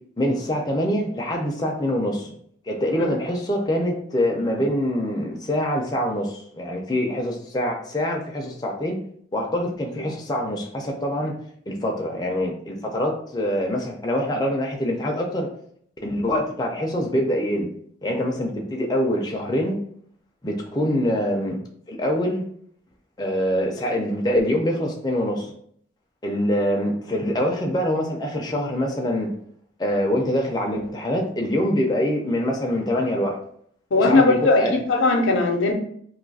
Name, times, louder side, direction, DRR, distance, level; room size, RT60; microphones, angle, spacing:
voice 1, 0.2-2.3 2.7-9.0 9.3-11.3 11.7-15.5 16.0-17.7 18.0-19.8 20.4-21.6 21.9-22.4 23.2-25.5 26.2-29.3 29.8-33.4 34.0-34.8, equal, 20° left, 0 dB, 0.4 m, -24 dB
voice 2, 33.9-35.7, left 3 dB, 85° left, 3 dB, 0.5 m, -18 dB
2.6 x 2.4 x 3.9 m, 0.63 s
head